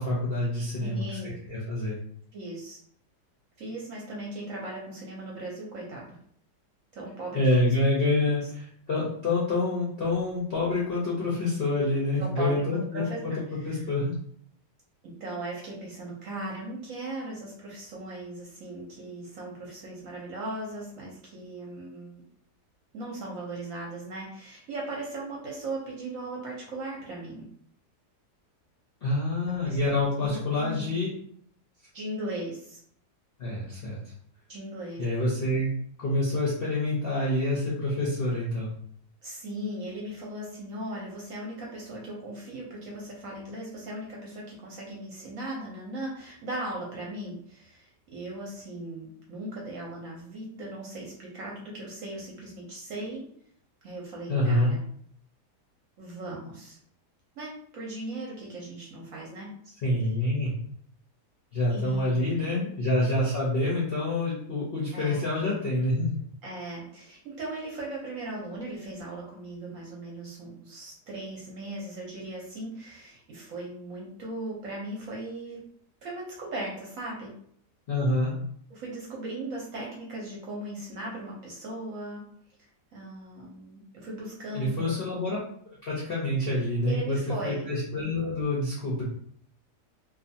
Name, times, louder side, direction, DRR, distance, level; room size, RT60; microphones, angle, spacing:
voice 1, 0.0-1.2 1.5-2.0 7.3-13.3 13.7-14.1 29.0-31.1 33.4-34.0 35.0-35.7 36.0-38.7 54.3-54.7 59.8-60.6 61.5-66.1 77.9-78.3 84.5-85.4 85.8-87.2 87.4-89.0, left 1 dB, 55° left, -6 dB, 0.6 m, -27 dB
voice 2, 0.8-1.4 2.3-2.8 3.6-6.2 6.9-7.4 12.2-13.8 15.0-22.2 22.9-27.5 29.4-29.9 30.2-30.9 31.9-32.8 34.5-35.0 39.2-53.3 53.8-54.8 56.0-56.8 57.4-59.5 61.7-62.5 64.9-65.3 66.4-75.6 76.0-77.3 78.7-82.2 82.9-85.0 86.8-87.7, right 1 dB, 65° right, -3 dB, 0.9 m, -38 dB
2.7 x 2.4 x 2.6 m, 0.64 s
omnidirectional pair, 1.8 m